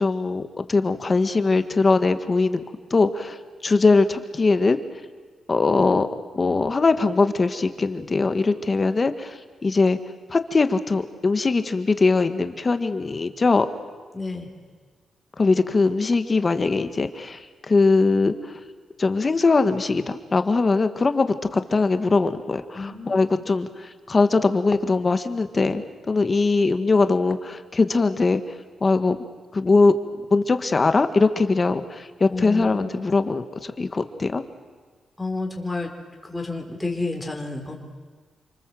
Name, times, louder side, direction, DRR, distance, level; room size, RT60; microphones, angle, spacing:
voice 1, 0.0-2.6 2.9-3.4 3.6-4.8 5.5-6.1 6.3-10.0 10.3-13.7 15.4-17.4 17.7-18.3 19.0-28.4 28.8-29.2 29.5-29.9 30.3-34.4, left 3 dB, 30° left, 9 dB, 1.6 m, -21 dB
voice 2, 14.1-14.5 22.7-23.4 32.3-32.9 35.2-35.9 36.2-37.7, left 3 dB, 10° left, 2 dB, 4.0 m, -30 dB
28.0 x 25.5 x 7.8 m, 1.5 s
cardioid pair, 110°, 0 cm